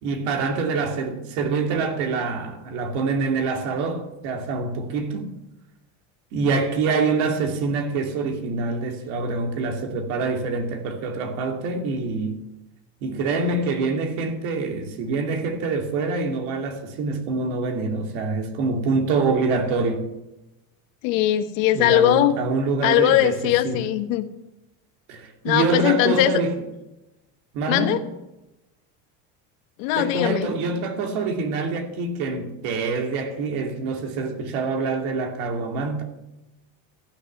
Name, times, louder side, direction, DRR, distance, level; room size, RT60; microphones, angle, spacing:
voice 1, 0.0-5.3 6.3-12.4 13.0-20.1 21.7-23.8 25.1-26.5 27.5-28.0 29.9-36.0, right 4 dB, 70° right, 2.5 m, -25 dB
voice 2, 21.0-22.3 22.8-24.3 25.4-26.4 27.7-28.0 29.8-30.5, left 13 dB, 85° left, 1.3 m, -20 dB
14.5 x 6.5 x 9.5 m
cardioid pair, 150°, 39 cm